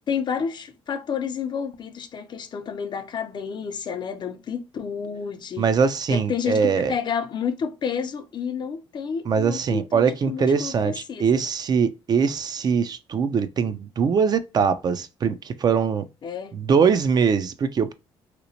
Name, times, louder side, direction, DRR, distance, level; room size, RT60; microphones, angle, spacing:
voice 1, 0.1-5.7 6.1-11.4 16.2-16.6, left 6 dB, 45° left, 0.5 m, -30 dB
voice 2, 5.6-6.9 9.3-16.0 16.5-17.9, right 6 dB, 40° right, 0.4 m, -22 dB
2.9 x 2.0 x 2.7 m
supercardioid pair, 75°, 10 cm